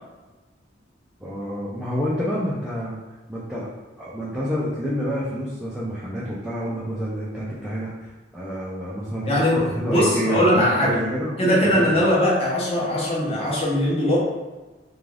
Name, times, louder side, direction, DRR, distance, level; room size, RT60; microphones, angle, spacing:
voice 1, 1.2-3.0 3.3-3.7 4.0-9.3 9.7-11.8, equal, 5° right, -8 dB, 0.3 m, -28 dB
voice 2, 9.3-11.0 11.4-14.2, equal, 30° left, -6 dB, 0.8 m, -20 dB
2.5 x 2.3 x 3.2 m, 1.2 s
head